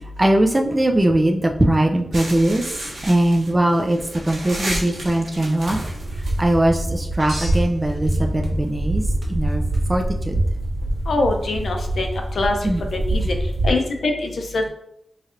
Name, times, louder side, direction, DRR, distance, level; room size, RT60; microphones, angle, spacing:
voice 1, 0.2-2.6 3.0-4.0 4.3-5.8 6.4-9.0 9.3-9.6 9.9-10.4 12.6-12.8 13.2-13.3, right 1 dB, 25° right, 2 dB, 0.4 m, -20 dB
sound 1, 2.1-13.7, right 1 dB, 85° right, 1.4 m, -26 dB
sound 2, 7.2-8.8 9.2-9.8 11.4-11.5, right 1 dB, 60° right, 0.9 m, -35 dB
voice 2, 11.1-12.1 12.4-12.5 12.9-13.2 13.6-14.7, left 2 dB, 85° left, 3 dB, 0.6 m, -23 dB
4.2 x 3.2 x 2.5 m, 0.74 s
wide cardioid pair, 85°, 0 cm